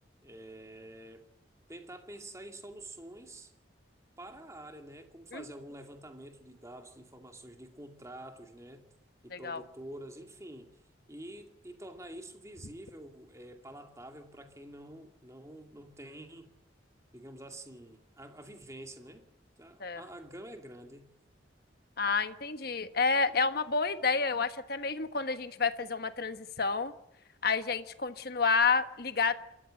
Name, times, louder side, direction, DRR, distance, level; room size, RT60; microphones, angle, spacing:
voice 1, 0.2-1.2 1.7-3.5 4.2-8.9 9.2-10.7 11.1-16.5 17.1-19.2 19.6-21.1, right 1 dB, 15° right, 4 dB, 2.4 m, -47 dB
voice 2, 9.3-9.6 19.8-20.0 22.0-26.9 27.4-29.3, left 4 dB, 55° left, 10 dB, 1.3 m, -29 dB
28.0 x 14.5 x 7.8 m, 0.84 s
head